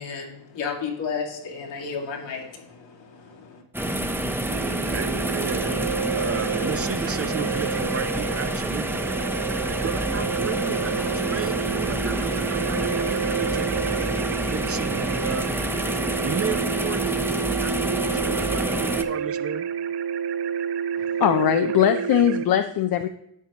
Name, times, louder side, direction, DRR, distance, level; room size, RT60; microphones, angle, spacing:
voice 1, 0.0-3.6, left 5 dB, 75° left, -1 dB, 2.2 m, -33 dB
sound 1, 3.7-19.0, right 1 dB, 5° right, 0.8 m, -28 dB
voice 2, 4.4-9.0 9.8-13.9 14.5-15.5 16.2-17.3 17.5-19.7, right 6 dB, 30° right, 10 dB, 0.7 m, -33 dB
sound 2, 4.5-22.5, right 7 dB, 65° right, 0.6 m, -30 dB
voice 3, 21.2-23.1, left 10 dB, 55° left, 8 dB, 0.6 m, -20 dB
11.0 x 6.9 x 3.0 m, 0.78 s
supercardioid pair, 65°, 44 cm